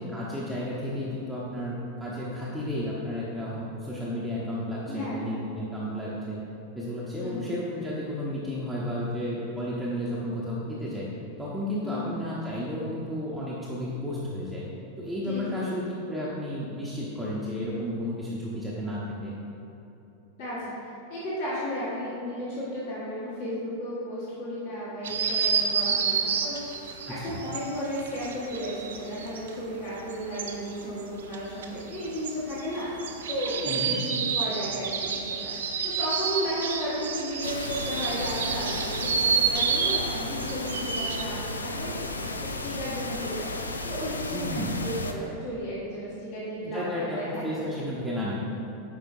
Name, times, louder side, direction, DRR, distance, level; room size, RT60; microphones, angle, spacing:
voice 1, 0.0-6.4 6.8-11.1 11.4-14.6 15.0-19.3 27.0-27.4 33.7-33.9 44.3-44.7 46.6-48.3, left 1 dB, 5° right, -8 dB, 0.8 m, -32 dB
voice 2, 4.9-5.2 7.2-7.5 11.8-12.0 15.2-15.6 20.4-26.6 27.1-32.9 33.3-43.5 43.8-47.6, equal, 50° left, -8 dB, 1.4 m, -34 dB
sound 1, 25.0-29.6 29.9-41.2, right 6 dB, 65° right, 0.5 m, -30 dB
sound 2, 37.4-45.1, left 2 dB, 80° left, 0.4 m, -34 dB
9.2 x 4.3 x 2.6 m, 2.9 s
figure-of-eight pair, 90°, 0 cm